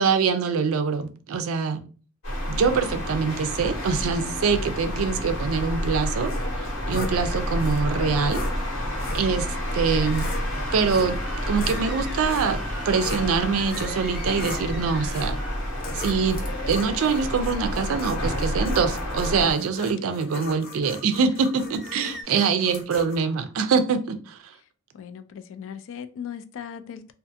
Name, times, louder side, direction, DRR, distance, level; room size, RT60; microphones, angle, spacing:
voice 1, 0.0-1.8 2.5-8.4 9.1-9.5 9.7-10.3 10.7-11.2 11.5-15.4 15.9-16.4 16.7-24.6, right 5 dB, 75° right, 0.4 m, -24 dB
sound 1, 2.2-19.5, equal, 85° left, 1.3 m, -29 dB
sound 2, 6.3-7.2 7.6-7.8 8.3-8.5 9.0-9.3 9.9-10.4 10.9-11.2 11.5-13.3 13.7-14.0 14.3-14.7 15.0-15.4 15.8-23.2, left 2 dB, 45° left, 0.7 m, -38 dB
sound 3, 9.9-15.9 21.5-22.2, equal, ahead, 0.5 m, -43 dB
voice 2, 22.0-22.7 24.9-27.1, left 8 dB, 60° left, 0.3 m, -39 dB
2.5 x 2.4 x 2.6 m
head